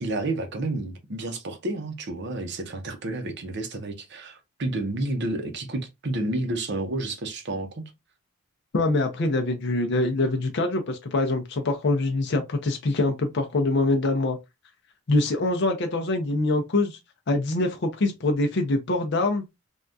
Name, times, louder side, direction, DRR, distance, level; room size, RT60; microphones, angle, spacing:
voice 1, 0.0-7.9, right 2 dB, 50° right, 0.6 m, -30 dB
voice 2, 8.7-14.4 15.1-17.0 17.3-19.7, left 2 dB, 50° left, 0.5 m, -24 dB
3.5 x 2.3 x 2.6 m
head